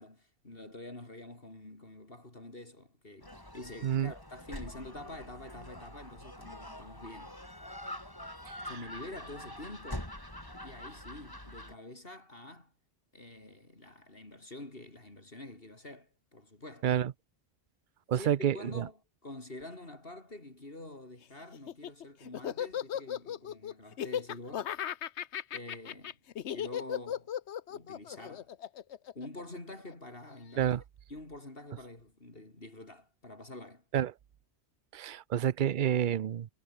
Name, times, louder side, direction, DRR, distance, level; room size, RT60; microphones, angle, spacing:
voice 1, 0.0-7.4 8.6-10.1 10.6-12.7 13.1-16.9 18.1-19.0 19.2-24.7 25.5-26.2 26.5-27.3 27.7-28.5 29.1-30.8 31.1-33.8, left 2 dB, 55° left, 4.4 m, -47 dB
Gull seagull, 3.2-11.8, left 1 dB, 20° left, 4.4 m, -45 dB
voice 2, 18.1-18.9 30.6-30.8 33.9-34.1 34.9-36.5, right 10 dB, 55° right, 0.7 m, -29 dB
Laughter, 21.5-29.9, left 10 dB, 85° left, 1.1 m, -36 dB
omnidirectional pair, 1.1 m